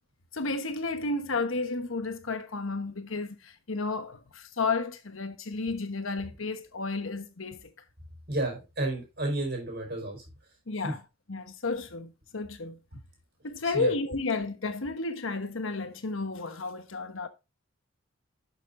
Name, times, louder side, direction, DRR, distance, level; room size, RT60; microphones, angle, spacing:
voice 1, 0.3-7.7 10.7-11.0 11.3-12.8 13.4-17.3, left 3 dB, 80° left, 1.2 m, -32 dB
voice 2, 8.3-10.2 10.8-10.9 13.6-13.9, right 2 dB, 55° right, 4.4 m, -31 dB
11.5 x 6.6 x 2.6 m
head